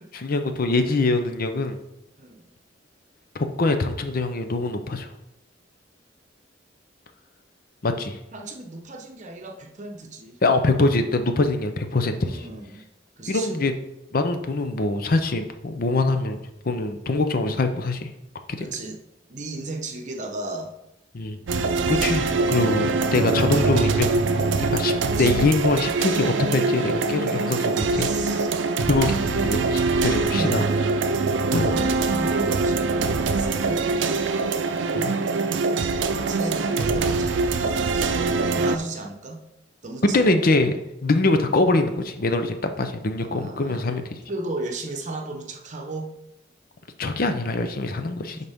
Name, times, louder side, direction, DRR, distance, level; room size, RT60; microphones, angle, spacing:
voice 1, 0.1-1.8 3.3-5.1 7.8-8.2 10.4-12.5 13.3-13.7 14.1-16.4 16.6-18.1 18.5-18.7 21.1-21.4 21.8-28.1 28.9-30.6 31.5-31.7 34.9-35.1 38.6-38.7 40.1-40.8 41.0-44.0 47.0-48.5, left 2 dB, 50° left, 8 dB, 0.6 m, -23 dB
voice 2, 2.2-2.5 8.3-10.4 12.2-12.8 13.2-13.6 18.6-19.0 19.3-20.7 25.0-25.3 27.9-28.5 30.4-30.6 31.6-34.2 36.1-39.4 39.8-40.0 41.3-41.6 43.2-43.8 44.3-46.1, right 2 dB, 40° right, 3 dB, 0.9 m, -35 dB
sound 1, 21.5-38.8, right 4 dB, 85° right, 0.5 m, -23 dB
11.0 x 4.1 x 3.6 m, 0.88 s
head